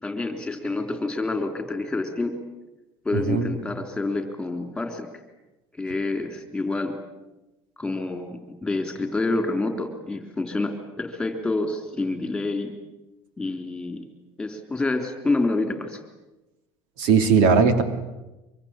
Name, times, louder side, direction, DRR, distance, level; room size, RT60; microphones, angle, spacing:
voice 1, 0.0-2.4 3.0-5.1 5.7-6.9 7.8-12.7 13.4-14.0 14.4-16.0, left 2 dB, 5° left, 6 dB, 3.4 m, -28 dB
voice 2, 3.1-3.5 17.0-17.8, right 5 dB, 85° right, 8 dB, 3.1 m, -18 dB
24.5 x 24.0 x 8.9 m, 1.0 s
cardioid pair, 155°, 10 cm